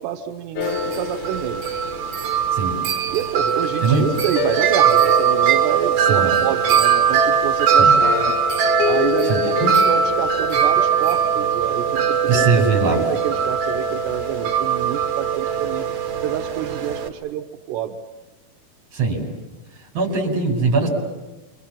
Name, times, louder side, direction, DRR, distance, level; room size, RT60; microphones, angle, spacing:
voice 1, 0.0-1.6 3.1-8.4 8.8-15.9 16.2-18.0, right 10 dB, 85° right, 6 dB, 3.2 m, -28 dB
sound 1, 0.6-3.6 4.1-6.8 8.0-11.3, left 8 dB, 70° left, 2.0 m, -29 dB
Wind chime, 0.6-17.1, right 7 dB, 65° right, 3.5 m, -20 dB
voice 2, 9.3-9.7 12.2-13.0 18.9-19.3 19.9-20.9, right 4 dB, 35° right, 1 dB, 6.2 m, -21 dB
29.0 x 24.5 x 7.4 m, 1.1 s
omnidirectional pair, 4.7 m